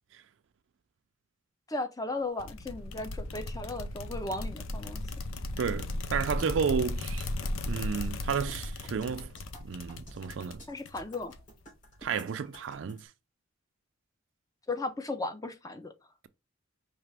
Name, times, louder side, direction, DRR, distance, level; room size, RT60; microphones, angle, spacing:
voice 1, 1.7-5.0 10.7-11.3 14.7-15.9, left 2 dB, 20° left, 0.6 m, -36 dB
sound 1, 2.4-11.6, left 2 dB, 85° left, 0.6 m, -36 dB
voice 2, 5.6-7.3 7.7-9.3 9.6-10.6 12.0-13.1, right 6 dB, 70° right, 0.4 m, -32 dB
sound 2, 7.4-13.0, equal, 40° left, 3.2 m, -52 dB
4.9 x 3.2 x 3.3 m
head